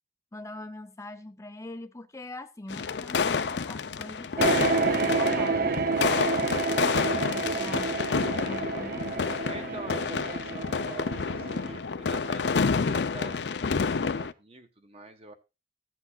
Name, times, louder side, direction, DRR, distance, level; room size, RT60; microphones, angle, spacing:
voice 1, 0.3-5.7 7.0-9.8, left 2 dB, 15° left, 0.5 m, -43 dB
sound 1, 2.7-14.3, left 5 dB, 75° left, 0.6 m, -29 dB
sound 2, 4.4-11.8, right 4 dB, 55° right, 0.7 m, -29 dB
voice 2, 9.4-15.3, right 2 dB, 35° right, 1.4 m, -45 dB
14.5 x 8.1 x 2.4 m
head